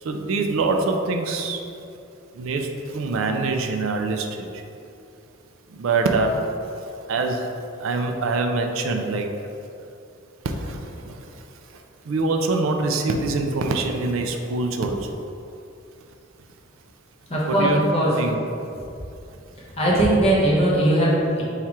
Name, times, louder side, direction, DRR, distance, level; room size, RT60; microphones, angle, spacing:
voice 1, 0.0-1.6 2.3-4.5 5.7-6.5 7.1-7.5 7.8-9.3 10.4-11.4 12.0-15.1 17.5-17.8 18.2-18.4, right 3 dB, 75° right, 4 dB, 0.4 m, -24 dB
voice 2, 17.3-18.2 19.8-21.4, right 1 dB, 30° left, -5 dB, 0.9 m, -19 dB
4.2 x 2.4 x 4.6 m, 2.7 s
head